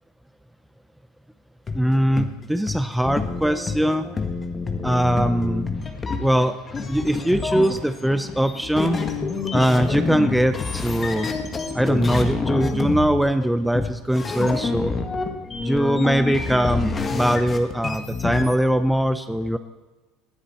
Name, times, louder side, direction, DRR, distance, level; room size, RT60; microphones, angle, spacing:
sound 1, 1.7-1.8 2.2-2.3 2.7-2.8 3.0-18.5, left 4 dB, 25° left, 1.6 m, -28 dB
voice 1, 1.7-4.1 4.8-5.7 6.2-6.5 6.9-9.0 9.5-11.3 11.7-14.9 15.6-19.6, right 1 dB, 5° right, 10 dB, 0.6 m, -21 dB
18.5 x 9.9 x 4.3 m, 1.2 s
hypercardioid pair, 90°, 0 cm